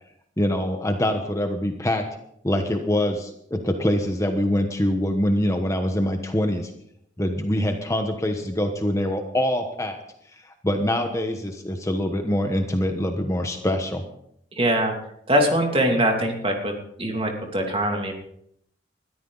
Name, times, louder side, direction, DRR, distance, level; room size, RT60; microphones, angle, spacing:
voice 1, 0.4-2.1 2.4-6.7 7.2-10.0 10.4-14.0, left 1 dB, 15° left, 5 dB, 1.1 m, -24 dB
voice 2, 14.6-14.9 15.3-16.7 17.0-18.1, right 1 dB, 30° right, 2 dB, 2.7 m, -22 dB
20.5 x 13.5 x 4.0 m, 0.72 s
head